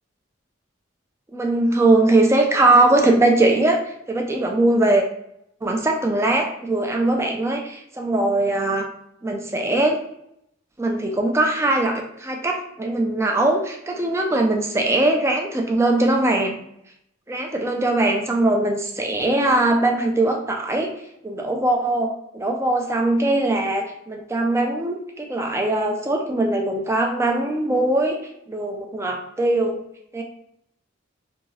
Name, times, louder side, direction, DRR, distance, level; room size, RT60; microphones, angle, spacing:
voice 1, 1.3-3.8 4.1-5.0 5.6-8.9 9.2-10.0 10.8-16.6 17.3-20.9 21.2-28.2 28.5-29.8 30.1-30.2, right 2 dB, 15° right, 2 dB, 0.4 m, -21 dB
2.7 x 2.6 x 3.1 m, 0.76 s
head